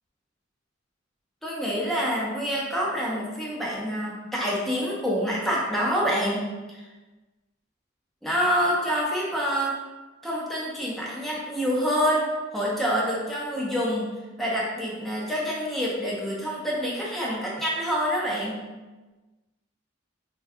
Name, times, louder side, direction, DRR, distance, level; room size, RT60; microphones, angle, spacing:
voice 1, 1.4-6.8 8.2-9.8 10.2-14.1 14.4-18.6, equal, ahead, -5 dB, 0.5 m, -27 dB
3.5 x 2.2 x 2.6 m, 1.2 s
head